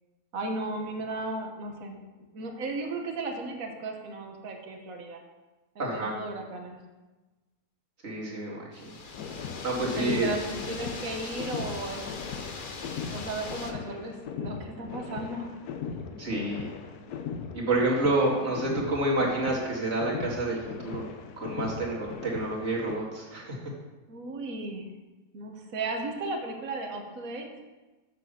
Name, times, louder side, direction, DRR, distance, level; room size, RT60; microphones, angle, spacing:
voice 1, 0.3-2.0 2.3-5.2 5.7-6.8 9.8-12.0 13.0-15.5 24.1-24.9 25.3-27.5, right 2 dB, 65° right, 3 dB, 1.7 m, -35 dB
voice 2, 5.8-6.1 8.0-8.9 9.6-10.3 15.9-16.7 17.5-21.1 21.4-23.6, right 2 dB, 45° right, -4 dB, 2.6 m, -29 dB
goose in the pond, 8.7-13.7, left 4 dB, 40° left, 0.9 m, -40 dB
sound 1, 9.1-23.0, left 6 dB, 85° left, 1.3 m, -39 dB
7.5 x 6.9 x 6.8 m, 1.2 s
omnidirectional pair, 1.6 m